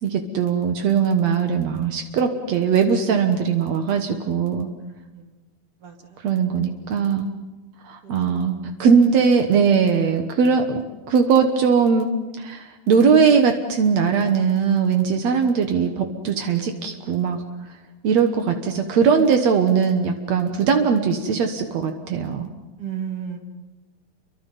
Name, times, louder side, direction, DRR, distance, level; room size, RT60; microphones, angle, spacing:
voice 1, 0.0-4.7 6.2-7.3 7.8-12.1 12.4-17.4 18.0-22.5, right 6 dB, 70° right, 5 dB, 1.6 m, -20 dB
voice 2, 5.8-6.2 8.0-8.9 22.8-23.4, right 8 dB, 40° right, 3 dB, 2.5 m, -35 dB
29.5 x 24.5 x 5.5 m, 1.1 s
omnidirectional pair, 5.0 m